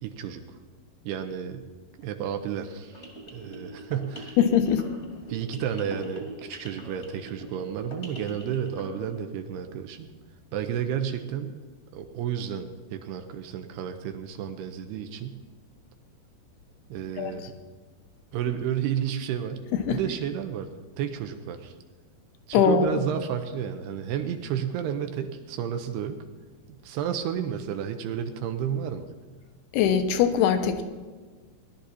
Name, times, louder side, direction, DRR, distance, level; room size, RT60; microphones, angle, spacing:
voice 1, 0.0-0.6 1.0-1.7 2.0-4.4 5.3-10.1 10.5-11.7 11.9-15.4 16.9-17.5 18.3-19.6 19.9-21.7 22.5-26.2 26.7-29.1, right 9 dB, 75° right, 7 dB, 2.7 m, -32 dB
sound 1, 2.9-9.2, right 1 dB, 30° left, 1.3 m, -43 dB
voice 2, 4.4-4.8 17.2-17.4 19.9-20.0 22.5-22.9 29.7-30.8, left 8 dB, 75° left, 8 dB, 2.8 m, -21 dB
19.5 x 12.0 x 4.2 m, 1.4 s
omnidirectional pair, 5.1 m